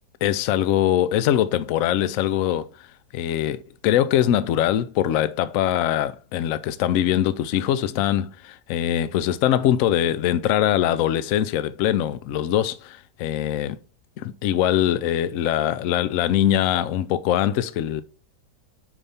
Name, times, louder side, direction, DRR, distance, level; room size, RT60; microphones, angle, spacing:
voice 1, 0.2-2.7 3.1-13.8 14.2-18.0, left 11 dB, 90° left, 0.7 m, -22 dB
5.0 x 4.7 x 5.5 m
omnidirectional pair, 2.0 m